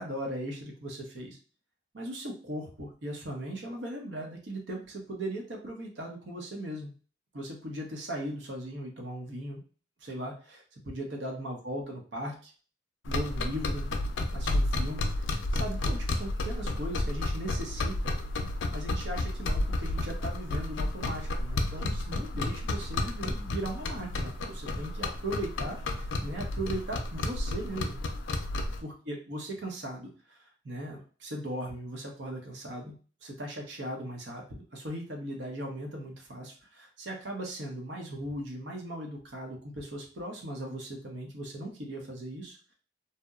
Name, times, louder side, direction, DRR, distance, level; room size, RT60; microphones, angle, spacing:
voice 1, 0.0-1.4 1.9-6.9 7.3-9.6 10.0-12.5 13.1-18.1 18.7-28.0 28.8-32.9 33.2-42.7, right 1 dB, 70° right, 1 dB, 0.7 m, -38 dB
sound 1, 13.1-28.8, left 2 dB, 90° left, 0.4 m, -31 dB
2.7 x 2.1 x 2.3 m, 0.39 s
head